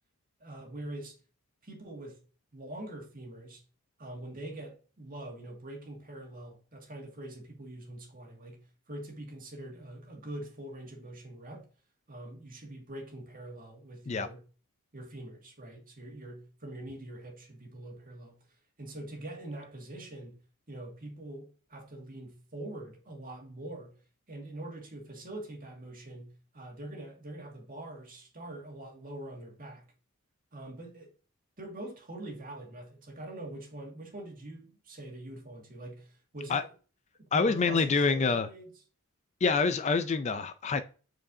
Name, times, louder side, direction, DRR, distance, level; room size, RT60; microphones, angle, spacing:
voice 1, 0.4-1.2 1.6-2.2 2.5-3.6 4.0-11.7 12.1-14.4 14.9-18.4 18.8-20.4 20.7-24.0 24.3-29.9 30.5-31.1 31.6-36.7 37.2-38.7, right 1 dB, 40° right, 2.0 m, -44 dB
voice 2, 37.3-38.5 39.4-40.8, left 4 dB, 30° left, 0.4 m, -26 dB
7.5 x 4.7 x 2.7 m
head